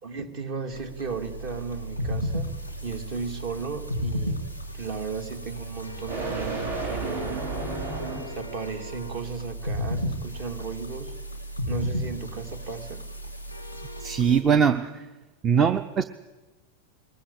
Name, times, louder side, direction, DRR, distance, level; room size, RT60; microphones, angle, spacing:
voice 1, 0.0-2.5 2.8-4.4 4.7-7.4 8.3-11.1 11.7-13.0, right 5 dB, 45° right, 2.5 m, -35 dB
sound 1, 0.7-14.4, equal, 85° right, 2.3 m, -34 dB
sound 2, 1.6-8.5, right 3 dB, 70° right, 5.0 m, -35 dB
voice 2, 14.0-15.1 15.4-16.0, right 7 dB, 25° right, 0.7 m, -22 dB
22.5 x 20.0 x 8.3 m
figure-of-eight pair, 90°, 0 cm